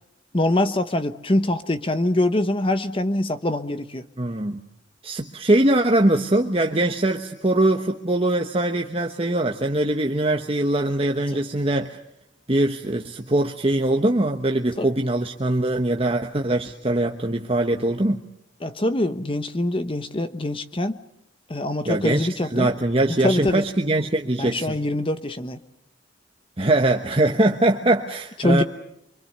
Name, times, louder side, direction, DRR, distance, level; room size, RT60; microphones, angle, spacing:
voice 1, 0.3-4.0 14.8-14.9 18.6-21.0 21.5-22.7 23.2-23.6 24.4-25.6 28.4-28.6, left 1 dB, 25° left, 10 dB, 1.0 m, -24 dB
voice 2, 4.2-4.6 5.0-12.0 12.5-18.2 21.8-24.8 26.6-28.6, right 1 dB, 30° right, 4 dB, 1.1 m, -22 dB
26.0 x 24.5 x 6.8 m, 0.79 s
head